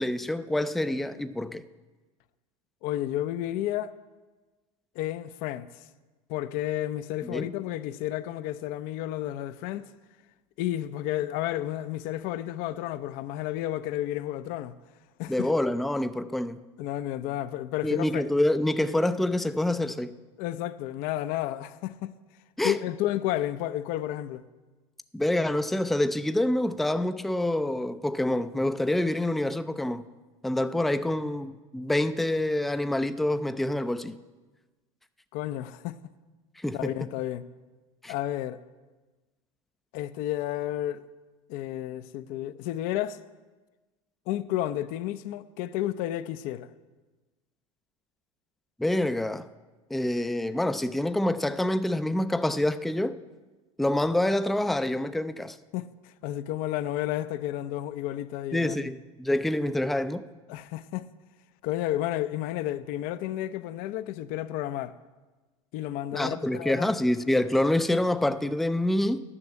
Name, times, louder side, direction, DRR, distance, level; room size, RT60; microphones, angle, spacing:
voice 1, 0.0-1.6 7.2-7.5 15.3-16.6 17.8-20.1 22.6-22.8 25.1-30.0 30.4-34.2 36.6-36.9 38.0-38.1 48.8-49.5 49.9-53.1 53.8-55.6 58.5-60.2 66.1-69.2, left 1 dB, ahead, 0.4 m, -26 dB
voice 2, 2.8-3.9 5.0-5.7 6.3-9.9 10.6-14.7 15.2-15.5 16.8-18.2 20.4-22.1 22.6-24.4 35.3-36.0 36.7-37.4 38.1-38.6 39.9-41.0 41.5-43.2 44.3-46.7 55.7-58.9 60.5-61.1 61.6-65.0 65.7-66.9, left 13 dB, 60° left, 0.6 m, -31 dB
9.8 x 6.2 x 8.5 m
hypercardioid pair, 80°, 17 cm